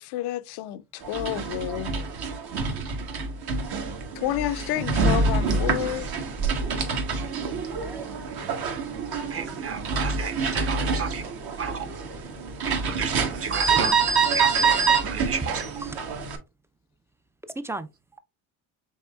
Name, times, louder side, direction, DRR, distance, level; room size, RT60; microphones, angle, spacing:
voice 1, 0.0-1.9 4.2-6.2, left 14 dB, 65° left, 0.5 m, -30 dB
sound 1, 1.0-16.4, right 4 dB, 55° right, 1.3 m, -26 dB
voice 2, 7.6-8.1 13.8-14.2 15.4-15.5 15.8-16.0 17.6-17.9, right 2 dB, 5° right, 0.4 m, -36 dB
voice 3, 9.3-11.2 11.6-11.9 12.6-13.1 13.4-13.9 14.3-15.6, right 6 dB, 30° right, 0.9 m, -32 dB
5.5 x 3.6 x 2.3 m
supercardioid pair, 75°, 43 cm